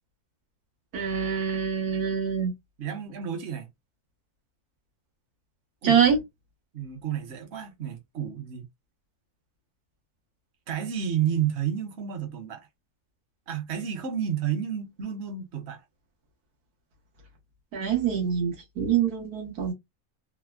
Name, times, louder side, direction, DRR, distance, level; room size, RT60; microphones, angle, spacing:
voice 1, 0.9-2.5 5.8-6.2 17.7-19.7, right 7 dB, 90° right, 1.5 m, -25 dB
voice 2, 2.8-3.7 5.8-6.0 6.7-8.6 10.7-12.7 13.5-15.8, right 9 dB, 55° right, 1.0 m, -31 dB
3.4 x 2.0 x 2.3 m
omnidirectional pair, 1.5 m